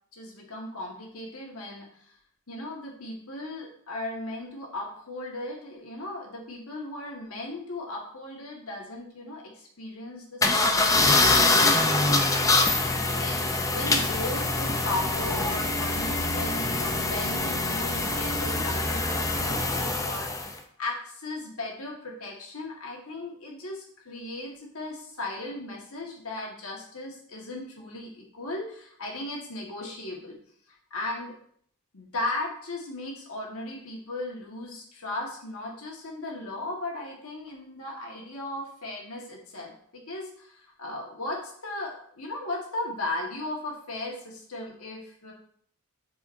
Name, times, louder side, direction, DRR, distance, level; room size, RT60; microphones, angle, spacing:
voice 1, 0.1-2.1 2.5-13.4 13.7-30.4 30.7-31.3 31.9-45.3, left 2 dB, 70° left, -1 dB, 1.7 m, -37 dB
sound 1, 10.4-20.5, left 2 dB, 15° left, 0.5 m, -24 dB
7.5 x 4.7 x 2.7 m, 0.62 s
head